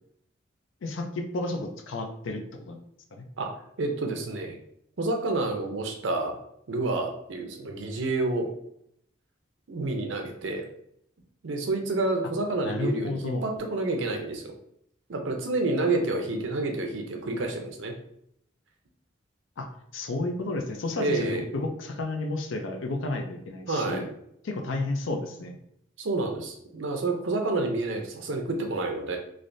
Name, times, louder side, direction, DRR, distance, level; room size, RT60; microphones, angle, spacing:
voice 1, 0.8-2.8 3.1-3.2 12.6-13.4 19.6-19.7 19.9-24.1 24.4-25.5, left 2 dB, 85° left, 4 dB, 0.5 m, -32 dB
voice 2, 3.8-4.6 5.0-6.4 6.7-8.5 9.7-10.6 11.4-14.5 15.1-17.9 21.0-21.5 23.7-24.1 26.0-29.2, right 2 dB, 80° right, 3 dB, 0.6 m, -29 dB
3.3 x 2.5 x 2.6 m, 0.73 s
head